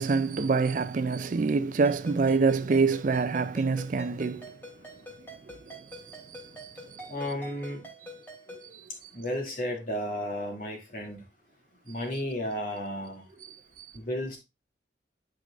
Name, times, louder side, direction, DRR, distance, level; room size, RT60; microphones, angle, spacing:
voice 1, 0.0-4.5 5.7-7.1 8.7-8.8 13.8-13.9, right 4 dB, 45° right, 0.4 m, -27 dB
Ringtone, 1.8-8.7, equal, 10° left, 2.8 m, -46 dB
voice 2, 7.1-7.8 9.1-11.2 11.9-13.2 13.9-14.4, equal, 50° left, 2.5 m, -33 dB
12.0 x 4.8 x 2.5 m
head